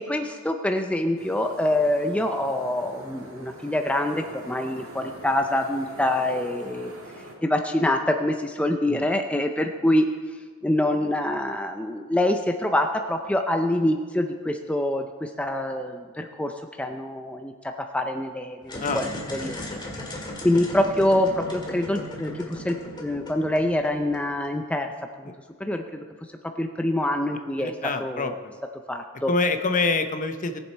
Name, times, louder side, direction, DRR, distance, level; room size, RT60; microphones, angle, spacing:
voice 1, 0.1-6.9 7.4-10.0 10.6-16.5 16.8-17.5 17.9-19.6 20.4-24.9 25.6-26.0 26.6-27.7 28.0-28.3 28.9-29.3, left 1 dB, 5° left, 4 dB, 0.4 m, -25 dB
sound 1, 1.2-7.3, right 1 dB, 80° right, 2.8 m, -43 dB
sound 2, 18.6-24.5, left 1 dB, 25° left, 1.9 m, -36 dB
voice 2, 27.6-28.5 29.3-30.6, left 3 dB, 40° left, 8 dB, 0.7 m, -26 dB
19.0 x 7.2 x 4.4 m, 1.5 s
head